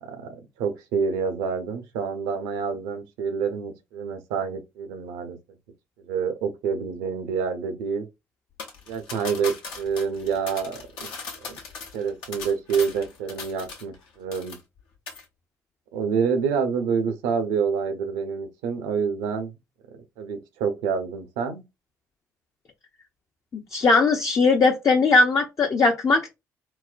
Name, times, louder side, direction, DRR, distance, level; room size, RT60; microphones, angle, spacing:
voice 1, 0.0-5.4 6.0-8.1 8.9-11.1 11.4-11.6 11.9-14.6 15.9-19.5 19.9-21.6, right 6 dB, 75° right, 0.6 m, -27 dB
sound 1, 8.6-14.0 14.3-14.8 15.1-15.2, left 4 dB, 70° left, 0.8 m, -38 dB
voice 2, 23.7-26.3, left 3 dB, 40° left, 0.6 m, -19 dB
4.1 x 2.1 x 2.4 m
hypercardioid pair, 50°, 8 cm